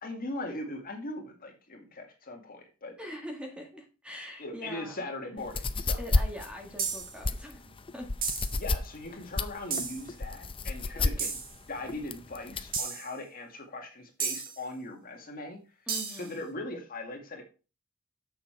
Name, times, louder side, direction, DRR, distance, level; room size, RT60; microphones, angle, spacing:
voice 1, 0.0-2.9 4.4-6.0 8.6-11.3 11.7-15.6 16.1-17.4, left 2 dB, 45° left, 2 dB, 2.1 m, -40 dB
voice 2, 3.0-5.0 6.0-8.1 11.0-11.3 15.9-16.4, equal, 5° right, 2 dB, 1.7 m, -43 dB
sound 1, 5.4-12.8, left 3 dB, 25° left, 0.6 m, -31 dB
sound 2, 6.8-7.2 8.2-8.6 9.7-10.0 11.2-11.5 12.7-13.1 14.2-14.6 15.9-16.3, right 5 dB, 45° right, 1.9 m, -33 dB
7.1 x 6.8 x 4.6 m, 0.32 s
head